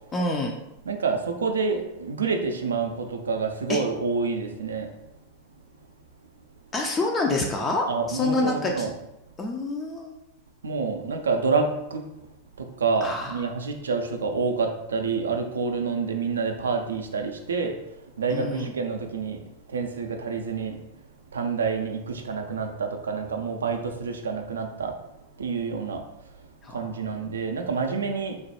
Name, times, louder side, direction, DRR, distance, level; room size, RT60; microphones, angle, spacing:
voice 1, 0.1-0.5 3.7-3.8 6.7-8.9 9.4-10.2 13.0-13.4 18.3-18.7 26.6-26.9, left 2 dB, 20° left, 1 dB, 0.3 m, -27 dB
voice 2, 0.9-4.9 7.9-8.9 10.6-12.1 12.6-21.0 21.3-25.0 25.4-26.0 26.4-28.4, right 4 dB, 70° right, 5 dB, 0.3 m, -28 dB
3.1 x 2.1 x 2.8 m, 0.87 s
figure-of-eight pair, 90°, 0 cm